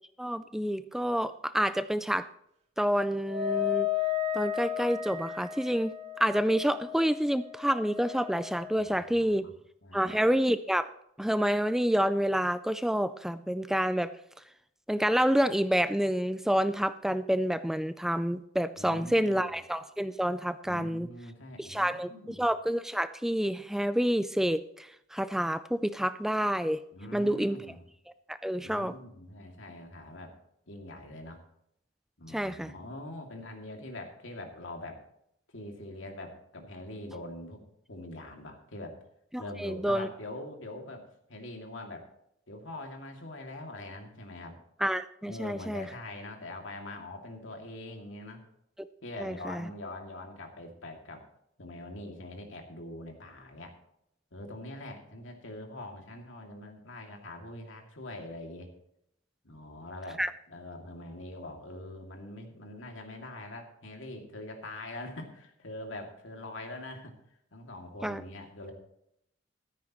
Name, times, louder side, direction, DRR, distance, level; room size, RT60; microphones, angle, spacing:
voice 1, 0.2-2.3 2.8-3.9 4.3-5.9 6.2-9.4 9.9-10.9 11.2-14.1 14.9-21.1 21.6-26.8 27.1-27.6 28.3-28.9 32.3-32.7 39.3-40.1 44.8-45.9 49.2-49.7 60.2-60.3 68.0-68.2, equal, ahead, 12 dB, 0.3 m, -28 dB
Wind instrument woodwind instrument, 3.3-8.9, left 10 dB, 35° right, 2.3 m, -34 dB
voice 2, 8.7-9.5 9.8-10.2 18.7-19.4 20.6-22.5 26.9-27.8 28.5-30.4 30.7-31.4 32.2-35.0 35.5-37.6 37.9-39.0 39.4-42.1 42.5-44.6 45.3-48.4 49.0-51.2 51.6-53.7 54.3-58.7 59.4-60.2 60.5-67.1 67.5-68.7, left 1 dB, 75° left, 3 dB, 2.5 m, -43 dB
14.5 x 13.5 x 3.0 m, 0.76 s
head